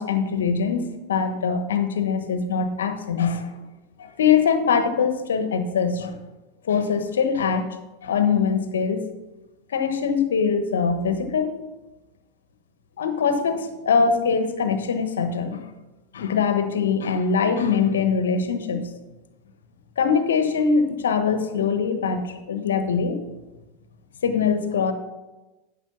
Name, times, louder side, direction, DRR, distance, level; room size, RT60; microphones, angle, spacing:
voice 1, 0.0-3.5 4.0-6.2 6.7-7.7 8.0-9.0 9.7-11.6 13.0-15.6 16.1-18.9 20.0-23.2 24.2-24.9, left 6 dB, 80° left, 9 dB, 1.1 m, -22 dB
9.1 x 6.9 x 5.9 m, 1.1 s
hypercardioid pair, 95°, 0 cm